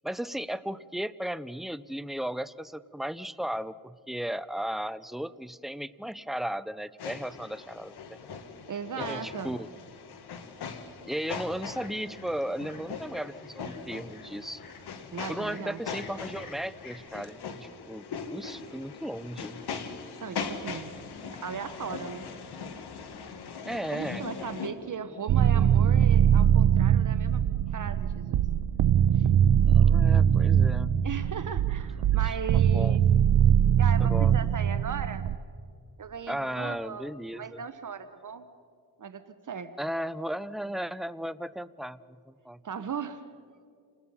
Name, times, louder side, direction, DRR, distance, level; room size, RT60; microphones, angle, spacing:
voice 1, 0.0-8.3 9.0-9.7 11.1-14.6 15.3-18.0 18.3-19.6 23.6-24.2 29.7-31.0 32.0-33.0 34.0-34.5 36.3-37.6 39.8-42.0 42.3-42.6, equal, ahead, 15 dB, 0.6 m, -35 dB
sound 1, 7.0-24.7, left 5 dB, 90° left, 1.8 m, -40 dB
voice 2, 8.7-9.6 15.1-15.8 20.2-21.0 21.4-22.2 23.9-27.4 27.7-28.5 29.1-29.3 31.0-33.0 33.8-35.2 36.0-37.1 37.3-38.5 39.0-39.8 42.6-43.2, right 6 dB, 55° right, 10 dB, 1.0 m, -37 dB
sound 2, 11.6-17.0, left 4 dB, 60° left, 2.9 m, -52 dB
sound 3, 25.3-35.4, right 9 dB, 90° right, 0.7 m, -22 dB
28.5 x 20.5 x 5.6 m, 2.4 s
cardioid pair, 85°, 38 cm